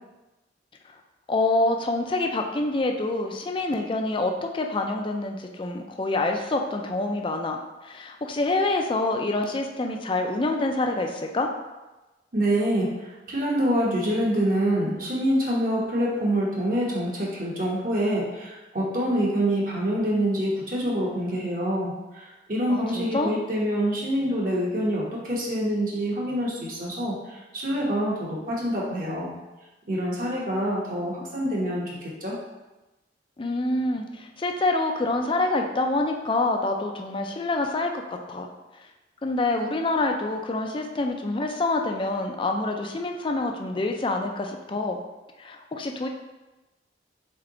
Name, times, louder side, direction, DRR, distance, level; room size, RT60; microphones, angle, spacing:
voice 1, 1.3-7.6 7.8-11.5 22.7-23.4 33.4-38.5 39.2-45.0 45.4-46.1, left 2 dB, 30° left, 3 dB, 0.4 m, -26 dB
voice 2, 12.3-29.3 29.9-32.4, equal, 50° right, -4 dB, 1.1 m, -26 dB
3.8 x 3.4 x 3.7 m, 1.1 s
head